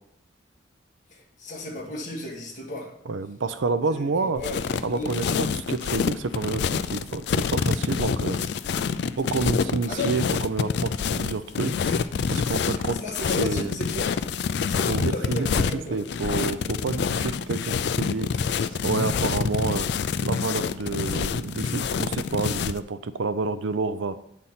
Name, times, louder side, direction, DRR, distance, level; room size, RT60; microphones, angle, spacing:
voice 1, 1.1-2.9 3.9-5.1 9.8-10.1 12.6-14.1 14.6-16.0, left 1 dB, 40° left, -2 dB, 1.8 m, -35 dB
voice 2, 3.1-4.4 4.8-8.5 9.2-12.0 12.3-13.0 13.4-13.8 14.9-15.5 15.9-18.3 18.8-19.9 20.2-24.2, right 4 dB, 85° right, 13 dB, 0.5 m, -29 dB
sound 1, 4.4-22.8, left 6 dB, 60° left, 0.3 m, -27 dB
7.9 x 4.1 x 5.7 m, 0.75 s
head